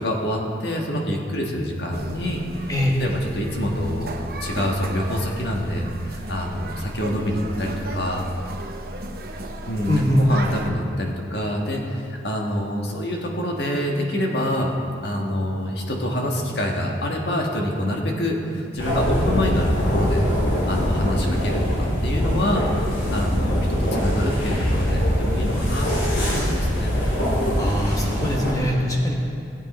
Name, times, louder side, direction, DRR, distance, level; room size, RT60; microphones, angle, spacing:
voice 1, 0.0-2.7 3.0-4.1 4.4-8.3 9.7-14.7 15.0-22.6 23.1-26.9, equal, 60° left, 0 dB, 1.5 m, -26 dB
sound 1, 1.9-10.7, right 1 dB, 55° right, 0.8 m, -34 dB
voice 2, 9.9-10.2 27.6-29.1, equal, 20° left, -1 dB, 1.4 m, -22 dB
creaky snow-skilift, 18.8-28.5, equal, 90° left, 3.2 m, -23 dB
16.0 x 8.4 x 4.2 m, 2.5 s
head